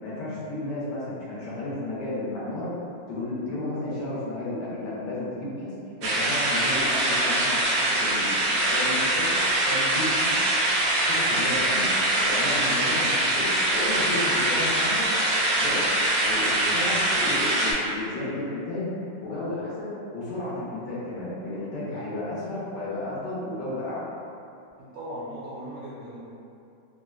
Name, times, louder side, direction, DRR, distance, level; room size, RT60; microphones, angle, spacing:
voice 1, 0.0-2.7 3.1-5.7 6.0-9.4 9.7-10.4 10.8-11.9 12.2-15.1 15.6-15.9 16.2-18.9 19.2-24.1, left 2 dB, 75° left, -8 dB, 1.4 m, -33 dB
sound 1, 6.0-17.7, right 1 dB, 85° right, 1.3 m, -23 dB
voice 2, 24.8-26.2, equal, 65° right, -9 dB, 0.9 m, -38 dB
3.7 x 2.1 x 2.3 m, 2.6 s
omnidirectional pair, 1.9 m